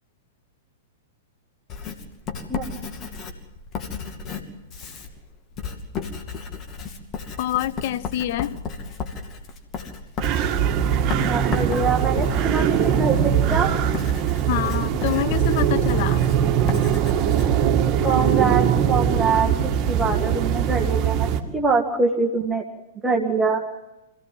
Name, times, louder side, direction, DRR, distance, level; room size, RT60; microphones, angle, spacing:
Writing, 1.7-18.3, left 5 dB, 25° left, 2.6 m, -35 dB
voice 1, 7.4-8.6 14.5-16.2, left 13 dB, 45° left, 0.9 m, -26 dB
sound 1, 10.2-21.4, right 8 dB, 30° right, 2.3 m, -21 dB
voice 2, 11.2-13.7 18.0-19.5 19.9-22.6 23.0-23.6, right 4 dB, 10° right, 2.0 m, -24 dB
26.0 x 17.0 x 7.7 m
figure-of-eight pair, 100°, 0 cm